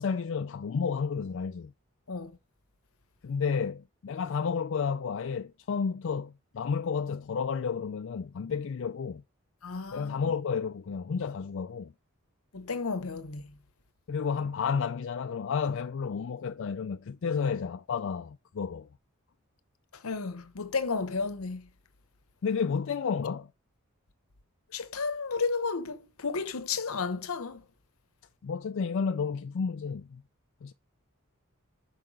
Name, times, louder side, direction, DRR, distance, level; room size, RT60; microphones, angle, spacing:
voice 1, 0.0-1.7 3.2-9.2 9.9-11.9 14.1-18.9 22.4-23.5 28.4-30.2 30.6-30.7, left 6 dB, 60° left, 0.4 m, -31 dB
voice 2, 9.6-10.3 12.5-13.5 19.9-21.7 24.7-27.6, left 4 dB, 75° left, 0.9 m, -33 dB
5.8 x 5.5 x 6.3 m
head